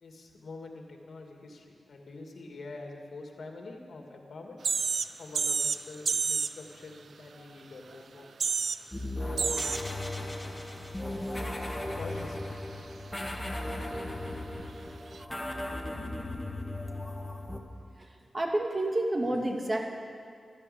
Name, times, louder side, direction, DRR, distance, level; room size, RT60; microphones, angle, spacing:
voice 1, 0.0-4.6 5.2-8.3 9.2-9.8 11.0-11.6 12.0-12.5, left 3 dB, 70° left, 2 dB, 2.4 m, -45 dB
sound 1, 4.6-5.1 5.3-5.8 6.1-6.5 7.9-8.0 8.2-8.8 9.4-9.8 10.4-10.5 15.1-15.2, right 5 dB, 70° right, 0.5 m, -28 dB
sound 2, 8.9-17.6, left 1 dB, 15° left, 1.8 m, -36 dB
voice 2, 18.0-19.9, right 1 dB, 35° right, 2 dB, 2.3 m, -30 dB
13.0 x 12.0 x 8.5 m, 2.2 s
cardioid pair, 60°, 0 cm